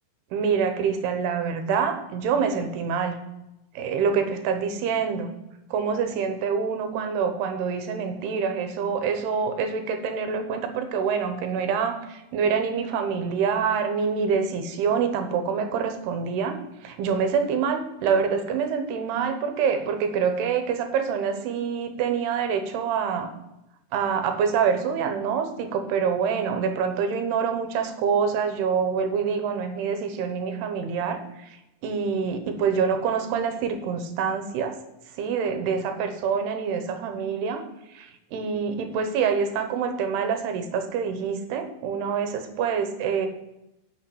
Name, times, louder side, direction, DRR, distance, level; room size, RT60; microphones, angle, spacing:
voice 1, 0.3-3.2 3.7-5.3 5.7-16.6 16.8-23.3 23.9-31.6 31.8-34.7 35.1-37.6 37.9-43.3, right 6 dB, 80° right, 7 dB, 3.1 m, -26 dB
8.6 x 6.8 x 7.7 m, 0.91 s
omnidirectional pair, 4.7 m